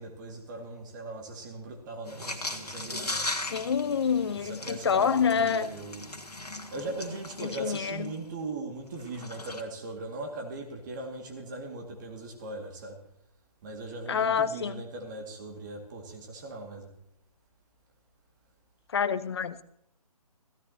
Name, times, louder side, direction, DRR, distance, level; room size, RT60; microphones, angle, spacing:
voice 1, 0.0-3.3 4.4-6.0 6.7-13.0 13.6-16.9, right 2 dB, 30° right, 1 dB, 2.1 m, -39 dB
sound 1, 2.1-8.3 8.9-9.6, left 2 dB, 80° left, 1.6 m, -38 dB
voice 2, 3.5-5.7 7.4-8.1 14.1-14.8 18.9-19.6, left 7 dB, 40° left, 15 dB, 0.6 m, -27 dB
16.0 x 15.5 x 2.9 m, 0.74 s
figure-of-eight pair, 145°, 20 cm